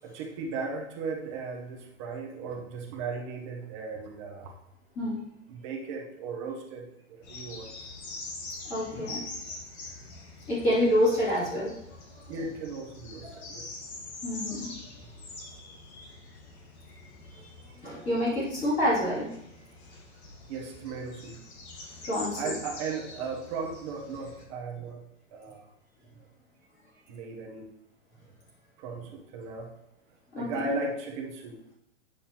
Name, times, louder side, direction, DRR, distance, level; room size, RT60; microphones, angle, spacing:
voice 1, 0.0-4.5 5.5-6.9 7.3-7.7 12.3-13.7 20.5-21.4 22.3-25.0 25.3-25.6 27.1-27.7 28.8-29.7 30.4-31.6, right 4 dB, 25° right, -1 dB, 0.9 m, -36 dB
sound 1, 7.2-24.4, left 3 dB, 55° left, 1.7 m, -44 dB
voice 2, 8.6-9.2 10.0-10.2 10.5-11.7 12.3-12.4 13.2-13.4 14.2-14.7 17.3-19.3 22.0-22.6 30.3-30.8, equal, 20° left, -9 dB, 2.6 m, -28 dB
8.9 x 6.5 x 2.9 m, 0.79 s
supercardioid pair, 170°, 39 cm